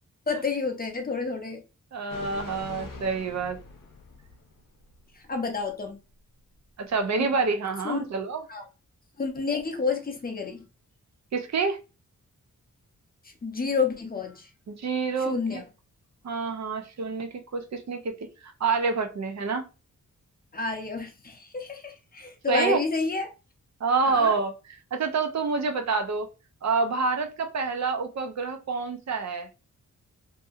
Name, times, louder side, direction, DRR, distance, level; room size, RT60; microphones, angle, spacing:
voice 1, 0.3-1.6 5.3-6.0 7.2-7.3 7.8-8.1 8.5-8.7 9.2-10.6 13.2-14.5 15.3-15.6 20.5-23.3 24.0-24.4, left 4 dB, 30° left, 0.6 m, -30 dB
voice 2, 1.9-3.6 6.8-8.4 11.3-11.8 14.7-15.6 16.2-19.7 22.5-22.8 23.8-24.5 24.9-26.3 26.6-29.5, right 4 dB, 60° right, 0.6 m, -27 dB
sound 1, 2.1-5.0 5.3-5.4, left 4 dB, 80° left, 0.6 m, -43 dB
2.7 x 2.7 x 2.4 m
wide cardioid pair, 125°, 32 cm